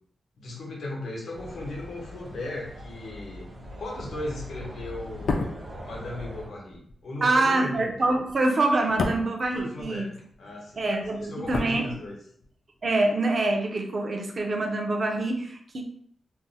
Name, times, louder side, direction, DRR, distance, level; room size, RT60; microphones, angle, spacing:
voice 1, 0.4-3.5 3.8-7.9 9.5-10.8 11.1-12.2, left 2 dB, 90° left, -2 dB, 0.9 m, -37 dB
sound 1, 1.3-6.5, equal, 65° right, 1.0 m, -42 dB
sound 2, 5.1-10.4 10.7-12.5 12.8-12.9, left 3 dB, 65° left, 0.4 m, -33 dB
voice 2, 7.2-10.1 10.8-11.9 12.8-15.8, right 2 dB, 40° right, 3 dB, 0.4 m, -25 dB
2.5 x 2.0 x 3.9 m, 0.64 s
wide cardioid pair, 180°, 0 cm